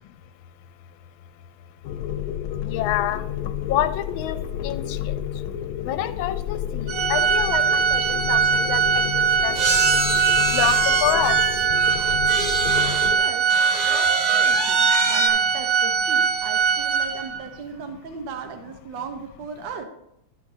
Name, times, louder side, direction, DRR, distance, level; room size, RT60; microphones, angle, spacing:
sound 1, 1.8-13.2, left 10 dB, 90° left, 1.5 m, -30 dB
voice 1, 2.7-3.2 3.7-4.4 4.6-5.1 5.8-9.0 9.4-9.5 10.5-11.4, left 12 dB, 75° left, 11 dB, 1.4 m, -27 dB
Organ, 6.9-17.5, right 6 dB, 90° right, 2.3 m, -21 dB
sound 2, 8.1-8.2 8.4-8.6 9.6-13.1 13.5-15.3, right 2 dB, 30° right, 0.7 m, -27 dB
voice 2, 13.1-13.5 13.8-19.9, right 5 dB, 65° right, 5 dB, 1.7 m, -37 dB
12.0 x 8.5 x 2.7 m, 0.79 s
omnidirectional pair, 2.4 m